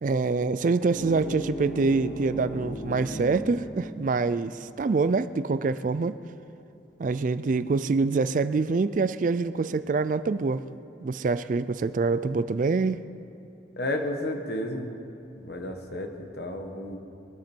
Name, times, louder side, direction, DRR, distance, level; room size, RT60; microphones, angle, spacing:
voice 1, 0.0-6.2 7.0-10.6 11.0-13.0, right 4 dB, 45° right, 14 dB, 0.4 m, -25 dB
sound 1, 0.9-4.8, right 1 dB, 30° left, 2.4 m, -37 dB
voice 2, 13.8-14.9 15.4-16.1 16.4-17.0, left 1 dB, 60° left, 4 dB, 1.5 m, -32 dB
22.5 x 12.5 x 4.5 m, 2.8 s
head